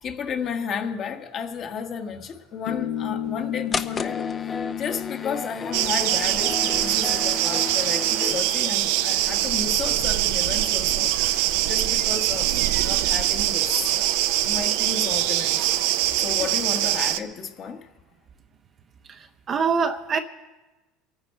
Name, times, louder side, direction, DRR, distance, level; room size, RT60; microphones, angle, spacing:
voice 1, 0.0-4.2 4.8-12.5 12.8-14.1 14.4-15.7 16.2-17.9, left 6 dB, 45° left, 1.5 m, -33 dB
sound 1, 2.7-9.6, left 11 dB, 60° left, 0.8 m, -35 dB
sound 2, 3.7-8.4, left 5 dB, 25° left, 0.6 m, -32 dB
sound 3, 5.7-17.2, right 14 dB, 75° right, 0.6 m, -23 dB
voice 2, 19.1-20.2, right 6 dB, 35° right, 0.7 m, -25 dB
23.0 x 9.5 x 4.5 m
supercardioid pair, 120°, 0 cm